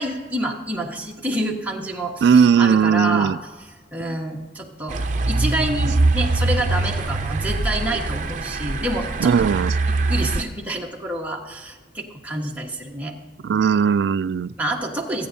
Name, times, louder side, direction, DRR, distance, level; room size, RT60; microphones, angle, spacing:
voice 1, 0.0-3.3 3.9-5.0 5.3-9.3 9.9-13.2 14.6-15.3, right 1 dB, 10° right, 1.4 m, -28 dB
voice 2, 2.2-3.4 9.2-9.7 13.4-14.5, right 6 dB, 65° right, 0.3 m, -17 dB
sound 1, 4.9-10.4, right 2 dB, 45° right, 0.7 m, -23 dB
26.0 x 9.4 x 2.7 m
head